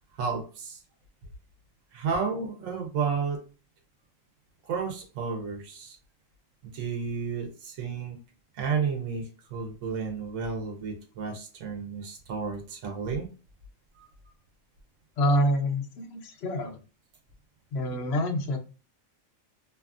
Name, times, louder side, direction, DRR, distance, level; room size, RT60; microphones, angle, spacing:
voice 1, 0.1-0.8 1.9-3.4 4.6-6.0 6.6-8.2 8.5-13.3 14.0-14.1, right 5 dB, 75° right, 4 dB, 1.1 m, -32 dB
voice 2, 15.2-16.8 17.7-18.6, equal, 60° left, 3 dB, 0.8 m, -26 dB
2.7 x 2.4 x 2.4 m, 0.34 s
omnidirectional pair, 1.4 m